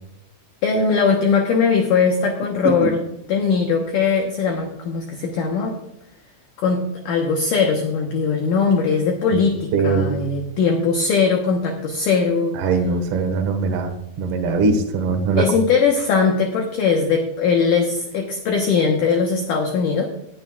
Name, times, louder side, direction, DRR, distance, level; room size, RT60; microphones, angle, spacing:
voice 1, 0.6-3.0 3.3-5.7 6.6-12.6 15.4-20.1, left 5 dB, 70° left, 2 dB, 2.1 m, -20 dB
voice 2, 2.6-2.9 9.7-10.2 12.5-15.4, right 4 dB, 85° right, 5 dB, 1.2 m, -21 dB
18.5 x 9.5 x 2.4 m, 0.80 s
omnidirectional pair, 4.9 m